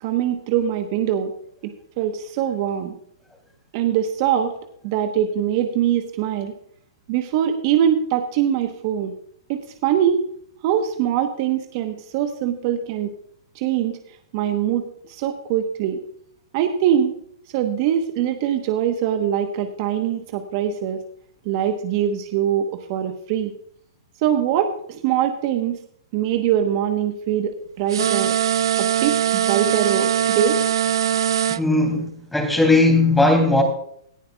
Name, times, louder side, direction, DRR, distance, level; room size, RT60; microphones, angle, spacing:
voice 1, 0.0-1.3 2.0-2.9 3.7-4.5 4.8-6.5 7.1-9.1 9.5-10.2 10.6-13.1 13.5-14.0 14.3-16.0 16.5-17.2 17.5-21.0 21.4-23.5 24.2-25.8 26.1-28.3 28.8-30.6, right 9 dB, 45° right, 1.2 m, -22 dB
sound 1, 27.9-31.6, right 9 dB, 75° right, 0.4 m, -21 dB
voice 2, 31.5-33.6, left 2 dB, 5° left, 3.1 m, -18 dB
18.0 x 11.5 x 2.4 m
hypercardioid pair, 130°, 2 cm